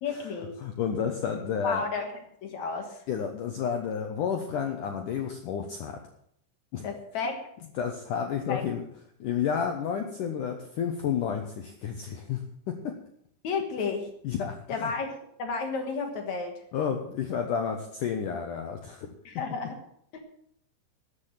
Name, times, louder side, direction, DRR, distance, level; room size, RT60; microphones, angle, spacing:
voice 1, 0.0-0.6 1.6-2.1 2.4-3.0 6.8-7.4 8.5-8.6 13.4-14.1 14.7-16.5 19.2-19.8 20.1-20.2, left 4 dB, 60° left, 4 dB, 1.9 m, -32 dB
voice 2, 0.6-1.8 3.1-6.0 6.7-6.9 7.8-8.8 9.2-12.4 12.7-13.0 14.2-14.6 16.7-19.1, left 7 dB, 80° left, 4 dB, 1.9 m, -31 dB
13.5 x 8.4 x 7.4 m, 0.69 s
omnidirectional pair, 5.3 m